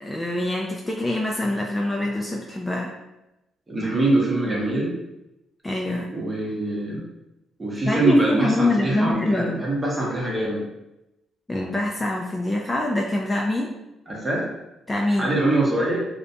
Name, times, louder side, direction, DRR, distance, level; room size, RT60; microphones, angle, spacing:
voice 1, 0.0-2.9 5.6-6.1 7.9-9.6 11.5-13.7 14.9-15.3, left 1 dB, 20° left, -1 dB, 0.3 m, -24 dB
voice 2, 3.7-5.0 6.1-7.0 7.6-10.6 14.1-14.4 15.2-16.0, right 2 dB, 20° right, -3 dB, 0.8 m, -23 dB
2.5 x 2.1 x 2.6 m, 0.93 s
cardioid pair, 90°, 0 cm